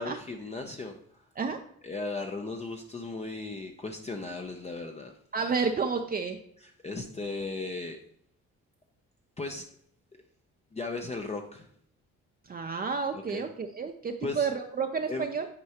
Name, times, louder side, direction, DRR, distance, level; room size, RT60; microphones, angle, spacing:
voice 1, 0.0-1.2 1.8-5.1 6.6-8.0 9.4-9.7 10.7-11.7 13.1-13.4 14.2-14.5 15.1-15.3, left 3 dB, 20° left, 3 dB, 0.6 m, -36 dB
voice 2, 5.3-6.4 12.4-15.5, right 5 dB, 30° right, 4 dB, 0.5 m, -30 dB
9.6 x 4.6 x 2.9 m, 0.68 s
cardioid pair, 90°, 30 cm